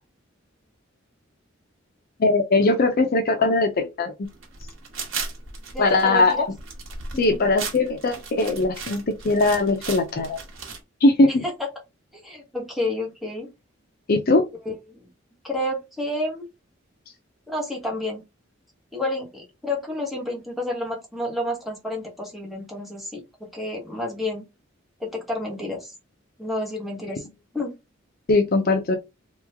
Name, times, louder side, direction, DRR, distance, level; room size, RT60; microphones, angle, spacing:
voice 1, 2.2-4.3 5.8-6.5 7.2-10.4 11.0-11.4 14.1-14.4 27.1-27.2 28.3-29.0, left 2 dB, 50° left, 0.5 m, -20 dB
sound 1, 4.3-10.8, right 4 dB, 90° right, 1.1 m, -36 dB
voice 2, 5.7-6.5 7.1-7.4 11.4-11.5 12.1-13.5 14.6-15.0 15.4-16.5 17.5-18.2 18.9-23.2 23.5-24.4 25.0-25.9 26.4-27.2 27.5-27.8, left 1 dB, ahead, 1.2 m, -30 dB
3.0 x 2.2 x 3.4 m
head